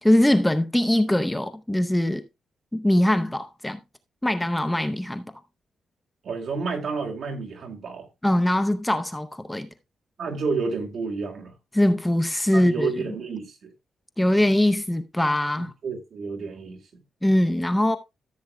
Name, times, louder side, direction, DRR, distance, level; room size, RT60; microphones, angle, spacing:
voice 1, 0.0-2.2 2.7-3.8 4.2-5.3 8.2-9.7 11.7-13.1 14.2-15.7 17.2-18.0, left 1 dB, 5° left, 0.6 m, -22 dB
voice 2, 6.2-8.1 10.2-11.5 12.5-13.7 15.8-16.8, right 4 dB, 55° right, 2.2 m, -30 dB
14.0 x 7.9 x 2.2 m
cardioid pair, 140°, 0 cm